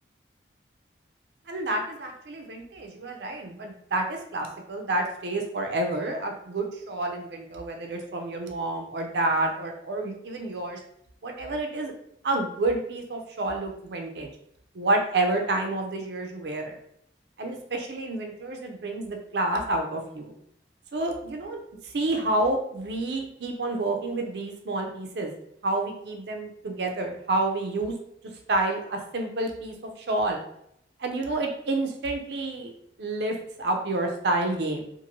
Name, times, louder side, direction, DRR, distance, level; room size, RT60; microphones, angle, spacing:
voice 1, 1.5-10.8 11.2-11.9 12.2-14.3 14.7-16.8 17.4-20.3 20.9-21.6 21.8-25.3 25.6-27.9 28.5-30.4 31.0-32.7 33.0-34.8, right 2 dB, 75° right, 3 dB, 0.5 m, -29 dB
2.6 x 2.5 x 2.9 m, 0.72 s
head